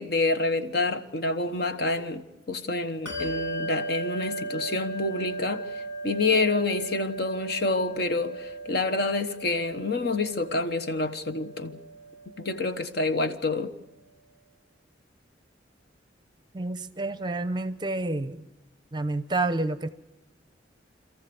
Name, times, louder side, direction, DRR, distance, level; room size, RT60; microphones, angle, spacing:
voice 1, 0.0-5.6 6.0-11.8 12.4-13.7, left 3 dB, 55° left, 1.2 m, -27 dB
Bell, 3.1-13.0, right 2 dB, 80° left, 5.6 m, -37 dB
voice 2, 16.5-18.5 18.9-19.9, right 2 dB, 25° right, 0.7 m, -29 dB
27.0 x 14.5 x 7.0 m
head